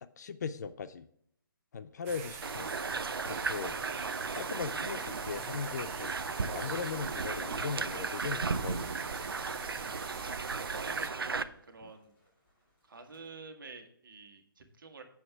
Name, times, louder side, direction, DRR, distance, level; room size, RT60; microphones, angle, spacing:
voice 1, 0.0-1.1 1.7-2.7 3.2-3.8 4.3-9.1 11.8-11.9, left 5 dB, 50° left, 13 dB, 0.5 m, -39 dB
sound 1, 2.1-11.1, right 7 dB, 15° right, 0.6 m, -45 dB
sound 2, 2.4-11.4, right 4 dB, 80° right, 0.6 m, -35 dB
sound 3, 4.5-13.4, left 2 dB, 15° left, 2.8 m, -65 dB
voice 2, 10.8-12.1 12.8-15.0, right 4 dB, 65° right, 5 dB, 1.6 m, -49 dB
7.7 x 7.1 x 3.5 m, 0.69 s
figure-of-eight pair, 140°, 12 cm